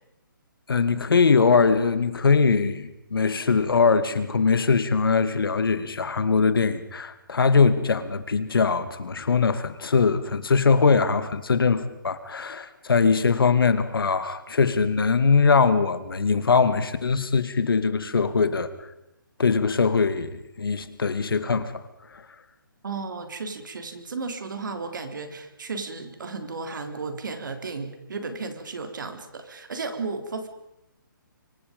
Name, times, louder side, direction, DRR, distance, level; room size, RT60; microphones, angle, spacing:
voice 1, 0.7-18.7 19.4-21.8, left 5 dB, 85° left, 11 dB, 2.3 m, -21 dB
voice 2, 22.8-30.5, right 4 dB, 60° right, 7 dB, 3.8 m, -34 dB
25.0 x 24.5 x 5.3 m, 0.86 s
hypercardioid pair, 175°, 12 cm